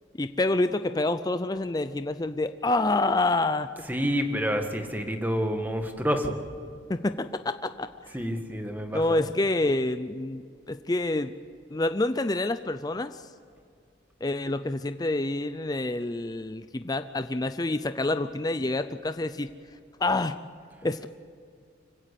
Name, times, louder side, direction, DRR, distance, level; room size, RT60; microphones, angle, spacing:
voice 1, 0.2-3.7 6.9-7.9 8.9-11.3 11.7-13.2 14.2-19.5 20.0-20.4 20.8-21.1, left 2 dB, 20° left, 10 dB, 0.5 m, -27 dB
voice 2, 3.9-6.4 8.1-9.3, equal, 10° right, 5 dB, 1.7 m, -28 dB
25.5 x 16.5 x 8.4 m, 2.3 s
head